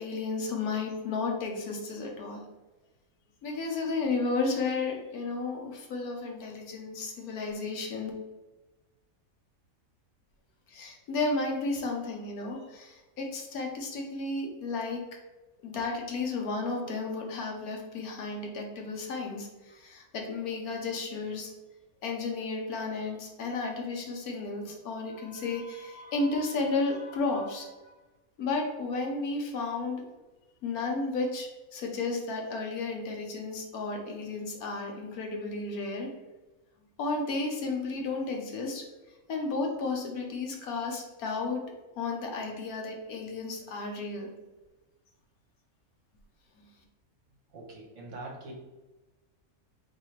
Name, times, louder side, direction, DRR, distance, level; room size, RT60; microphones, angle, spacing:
voice 1, 0.0-2.4 3.4-8.1 10.7-15.0 15.6-21.5 22.0-27.7 28.4-30.1 30.6-36.1 37.0-38.8 39.3-41.6 42.0-44.3, left 3 dB, 75° left, 1 dB, 1.3 m, -33 dB
voice 2, 47.5-48.5, right 2 dB, 60° right, -1 dB, 1.3 m, -43 dB
4.1 x 4.0 x 3.2 m, 1.1 s
omnidirectional pair, 1.6 m